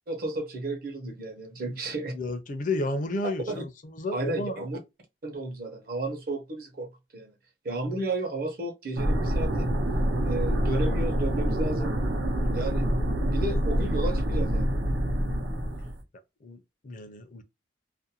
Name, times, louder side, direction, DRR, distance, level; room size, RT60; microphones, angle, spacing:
voice 1, 0.1-2.1 3.5-3.6 4.1-4.8 5.2-7.3 7.6-9.7 10.2-11.9 12.5-12.9 13.3-14.8, right 2 dB, 55° right, 0.7 m, -33 dB
voice 2, 2.1-4.6 16.4-17.4, left 2 dB, 45° left, 0.4 m, -32 dB
sound 1, 9.0-16.0, equal, 85° right, 0.7 m, -26 dB
2.5 x 2.1 x 2.7 m
head